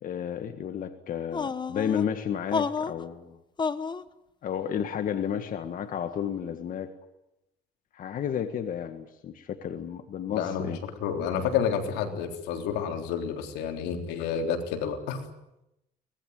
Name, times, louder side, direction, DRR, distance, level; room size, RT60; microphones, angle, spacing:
voice 1, 0.0-3.4 4.4-6.9 7.9-10.8, left 8 dB, 55° left, 7 dB, 1.8 m, -32 dB
sound 1, 1.3-2.0 2.5-3.0 3.6-4.0, left 5 dB, 25° left, 1.2 m, -30 dB
voice 2, 10.3-15.2, left 7 dB, 90° left, 4 dB, 3.7 m, -30 dB
24.0 x 20.0 x 9.3 m, 0.89 s
cardioid pair, 110°, 17 cm